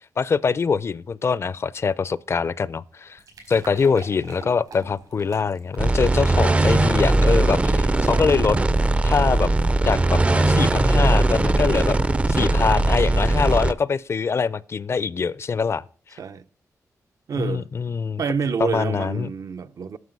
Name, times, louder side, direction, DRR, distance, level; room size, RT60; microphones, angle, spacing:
voice 1, 0.2-3.2 3.5-8.6 9.0-9.5 9.8-12.0 12.3-15.8 16.1-16.2 17.4-18.2 18.6-19.3, left 5 dB, 45° left, 0.4 m, -23 dB
sound 1, 2.9-10.5, right 4 dB, 80° right, 4.4 m, -48 dB
sound 2, 5.8-13.7, right 2 dB, 20° right, 0.4 m, -19 dB
voice 2, 17.3-17.7 18.2-20.0, right 5 dB, 65° right, 0.6 m, -27 dB
9.6 x 7.1 x 5.3 m
wide cardioid pair, 120°, 6 cm